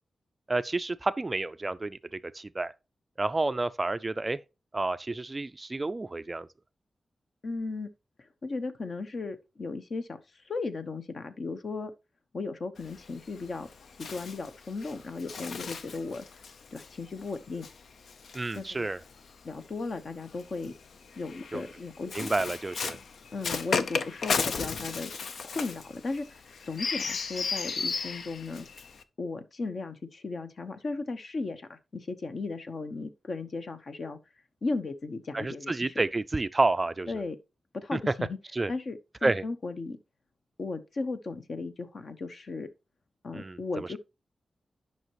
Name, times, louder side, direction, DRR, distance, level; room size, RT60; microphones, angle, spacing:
voice 1, 0.5-2.0 2.3-2.7 3.2-4.4 4.7-6.5 18.3-19.0 21.5-21.6 22.1-23.0 35.3-37.2 37.9-38.1 38.5-38.7 39.2-39.4 43.3-44.0, right 2 dB, 25° right, 0.3 m, -30 dB
voice 2, 7.4-7.9 8.4-10.2 10.5-11.9 12.3-13.7 14.0-16.2 16.7-17.7 18.5-18.9 19.4-20.7 21.2-22.3 23.3-25.1 25.4-28.7 29.2-34.2 34.6-35.9 37.1-37.4 37.7-38.3 38.7-40.0 40.6-42.7 43.2-44.0, left 3 dB, 50° left, 0.9 m, -36 dB
Bird, 12.8-19.3 20.2-29.0, left 5 dB, 75° left, 0.7 m, -35 dB
10.5 x 5.7 x 3.0 m
wide cardioid pair, 140°, 0 cm